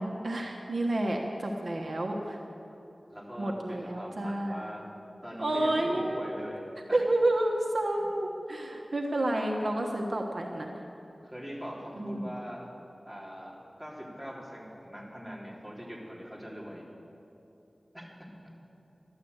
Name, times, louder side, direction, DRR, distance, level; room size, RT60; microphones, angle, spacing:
voice 1, 0.0-2.4 3.4-4.7 5.4-6.2 6.9-10.8 12.0-12.3, right 1 dB, 60° right, 1 dB, 1.2 m, -30 dB
voice 2, 3.1-4.9 5.2-7.1 7.9-8.0 11.2-12.7 13.0-16.8 17.9-18.5, equal, ahead, -4 dB, 3.4 m, -42 dB
13.0 x 11.5 x 8.0 m, 2.9 s
wide cardioid pair, 55°, 0 cm